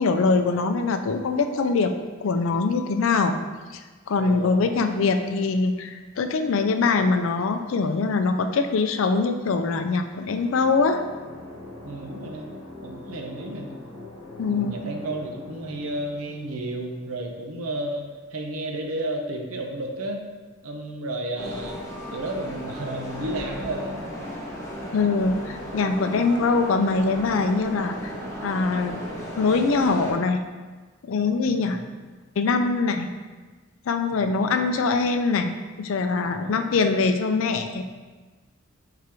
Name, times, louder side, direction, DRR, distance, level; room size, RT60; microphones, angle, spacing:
voice 1, 0.0-1.9 2.2-3.4 3.7-3.8 4.1-11.0 14.4-14.7 24.9-28.1 28.4-29.0 29.4-30.4 31.0-31.8 32.4-33.1 33.9-37.8, left 4 dB, 65° left, 7 dB, 0.4 m, -23 dB
voice 2, 4.2-4.9 11.8-12.5 12.8-13.7 14.5-20.2 20.6-21.8 22.1-24.0 31.4-31.9 34.1-34.6 36.2-36.9 37.7-37.8, right 1 dB, 85° right, 2 dB, 0.7 m, -33 dB
sound 1, 10.1-17.8, left 1 dB, 80° left, 1.0 m, -43 dB
sound 2, 21.4-30.1, equal, 15° left, 0.8 m, -35 dB
4.7 x 3.8 x 2.9 m, 1.4 s
head